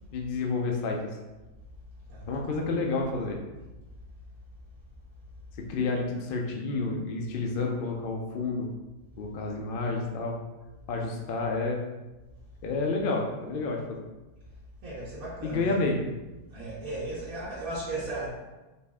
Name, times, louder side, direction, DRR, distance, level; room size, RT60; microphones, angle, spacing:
voice 1, 0.1-1.2 2.3-3.4 5.6-8.7 9.2-10.4 10.9-11.8 12.6-14.0 15.4-16.0, left 3 dB, 60° left, 1 dB, 0.6 m, -30 dB
voice 2, 2.1-2.4 14.8-15.6 16.5-18.3, right 2 dB, 85° right, -8 dB, 1.4 m, -36 dB
4.2 x 3.1 x 3.5 m, 1.1 s
omnidirectional pair, 1.5 m